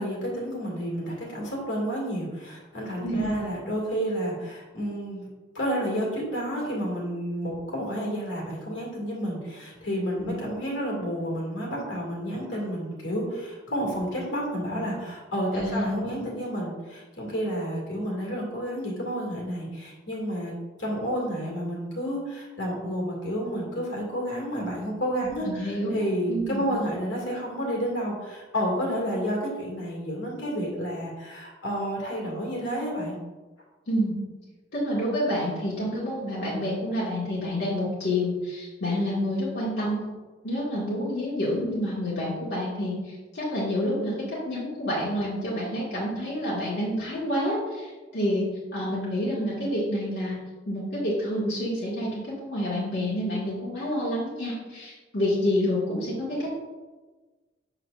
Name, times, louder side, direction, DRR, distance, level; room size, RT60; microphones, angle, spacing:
voice 1, 0.0-5.3 5.5-20.5 20.8-33.1, equal, 80° left, -2 dB, 2.2 m, -30 dB
voice 2, 3.0-3.3 10.2-10.4 15.5-16.1 25.2-26.0 26.3-26.7 33.9-34.2 34.7-40.0 40.4-48.4 48.7-50.4 50.6-56.6, equal, 65° left, -8 dB, 1.8 m, -28 dB
7.7 x 6.3 x 2.5 m, 1.3 s
head